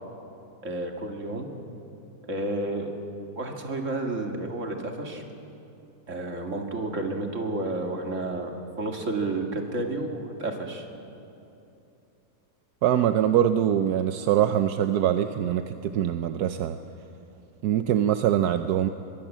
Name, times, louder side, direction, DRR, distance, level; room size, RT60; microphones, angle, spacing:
voice 1, 0.6-1.5 2.3-2.9 3.4-5.2 6.1-8.5 8.8-10.9, right 2 dB, 50° right, 3 dB, 2.6 m, -31 dB
voice 2, 12.8-16.8 17.6-18.9, right 10 dB, 80° right, 9 dB, 1.2 m, -23 dB
24.5 x 21.0 x 7.5 m, 2.8 s
omnidirectional pair, 1.7 m